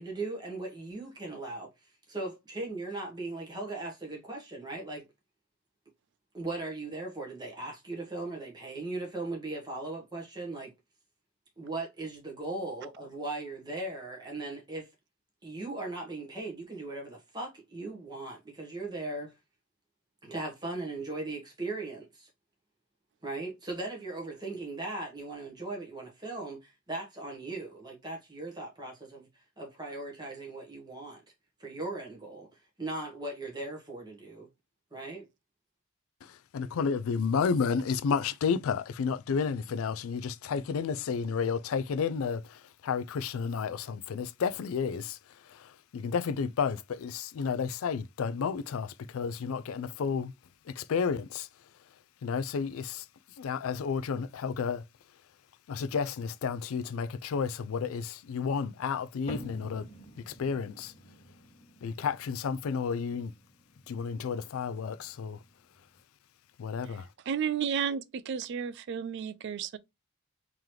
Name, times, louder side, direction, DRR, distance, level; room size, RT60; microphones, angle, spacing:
voice 1, 0.0-5.1 6.3-10.7 11.6-14.9 15.4-19.3 20.2-22.3 23.2-31.2 31.6-32.5 32.8-34.5 34.9-35.3, right 2 dB, 20° right, 1.2 m, -38 dB
voice 2, 36.5-45.2 45.6-45.7 45.9-50.3 50.8-51.5 52.2-53.0 53.4-54.8 55.7-59.9 60.3-60.9 61.8-63.3 63.9-65.4 66.6-67.1, left 6 dB, 75° left, 0.3 m, -31 dB
sound 1, 59.3-66.0, equal, 25° left, 0.9 m, -50 dB
voice 3, 66.8-69.8, right 7 dB, 50° right, 0.3 m, -33 dB
3.8 x 3.0 x 3.2 m
head